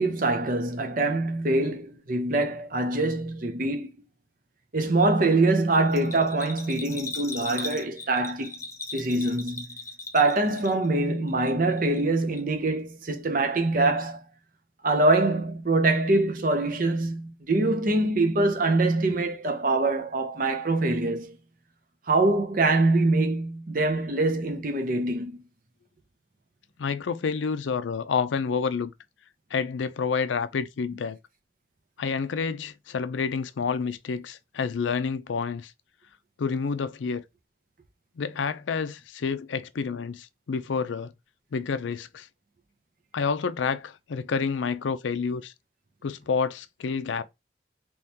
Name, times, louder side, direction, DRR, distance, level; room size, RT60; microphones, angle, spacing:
voice 1, 0.0-3.9 4.7-8.5 8.9-9.7 10.1-14.2 14.8-21.4 22.1-25.4, right 2 dB, 45° right, 0.7 m, -24 dB
Bell, 5.9-11.0 11.3-12.1 12.3-12.4, left 3 dB, 15° left, 0.6 m, -38 dB
voice 2, 26.8-28.9 29.5-31.2 32.0-35.7 36.4-37.2 38.2-41.1 41.5-42.3 43.1-45.5 46.0-47.2, left 5 dB, 85° left, 0.4 m, -29 dB
3.5 x 3.0 x 2.8 m
head